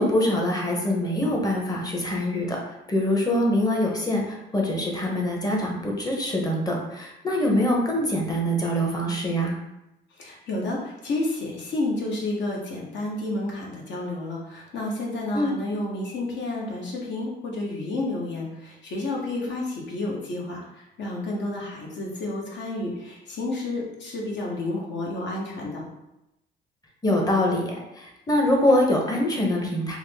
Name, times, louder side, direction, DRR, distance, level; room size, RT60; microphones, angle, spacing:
voice 1, 0.0-2.6 2.9-9.5 15.3-15.5 19.5-19.7 27.0-30.0, left 1 dB, 20° left, 0 dB, 0.8 m, -24 dB
voice 2, 10.2-25.8, left 2 dB, 65° left, -2 dB, 1.0 m, -30 dB
3.5 x 2.0 x 3.4 m, 0.91 s
cardioid pair, 90°, 20 cm